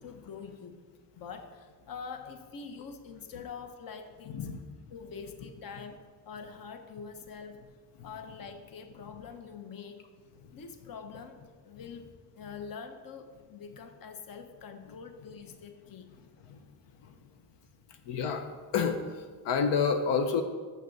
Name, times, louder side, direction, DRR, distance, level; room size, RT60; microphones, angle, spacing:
voice 1, 0.0-4.5 4.9-7.7 8.0-10.0 10.5-16.2, left 6 dB, 55° left, 7 dB, 0.9 m, -45 dB
voice 2, 4.3-4.6 16.5-16.6 17.0-17.1 18.0-18.5 18.7-20.4, left 6 dB, 85° left, 6 dB, 0.8 m, -29 dB
6.7 x 6.6 x 6.6 m, 1.5 s
cardioid pair, 125°, 42 cm